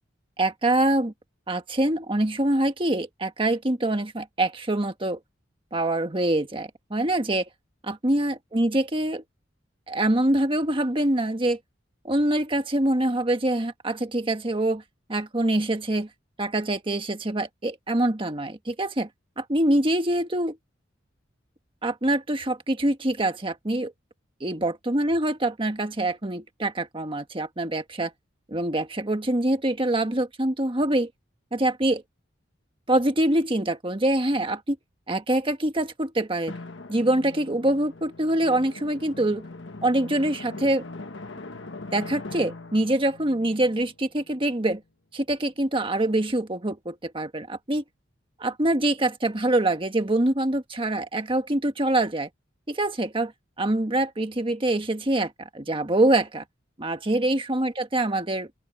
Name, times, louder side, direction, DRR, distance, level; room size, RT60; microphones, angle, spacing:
voice 1, 0.4-1.1 1.5-5.2 5.7-7.5 7.8-9.2 9.9-11.6 12.0-14.8 15.1-16.1 16.4-19.1 19.4-20.6 21.8-23.9 24.4-28.1 28.5-31.1 31.5-32.0 32.9-34.8 35.1-36.6 36.9-39.4 39.8-40.8 41.9-44.8 45.1-47.8 48.4-52.3 52.7-53.3 53.6-56.4 56.8-58.5, right 1 dB, 25° right, 1.5 m, -25 dB
Drum, 36.5-44.8, left 2 dB, 70° left, 1.5 m, -41 dB
open air
head